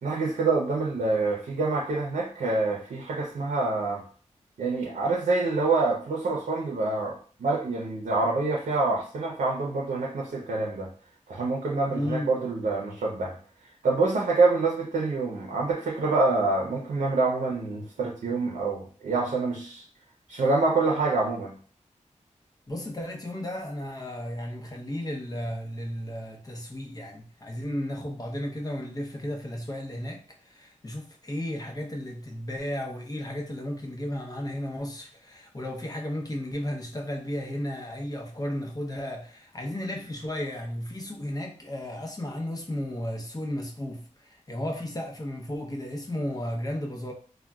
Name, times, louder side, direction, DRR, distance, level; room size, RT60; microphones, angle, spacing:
voice 1, 0.0-4.0 4.6-10.9 11.3-13.4 13.8-19.8 20.3-21.5, right 3 dB, 90° right, 0.6 m, -26 dB
voice 2, 11.9-12.4 22.7-47.1, left 1 dB, 30° left, 0.7 m, -34 dB
3.7 x 2.2 x 2.3 m
wide cardioid pair, 75°, 13 cm